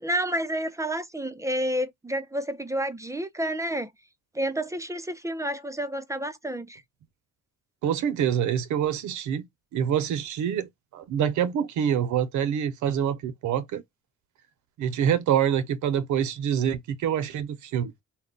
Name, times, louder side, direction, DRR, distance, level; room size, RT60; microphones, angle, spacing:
voice 1, 0.0-3.9 4.3-6.8, right 1 dB, 10° right, 0.4 m, -30 dB
voice 2, 7.8-9.5 9.7-13.8 14.8-17.9, right 9 dB, 75° right, 0.6 m, -26 dB
2.2 x 2.0 x 3.6 m
cardioid pair, 90°, 30 cm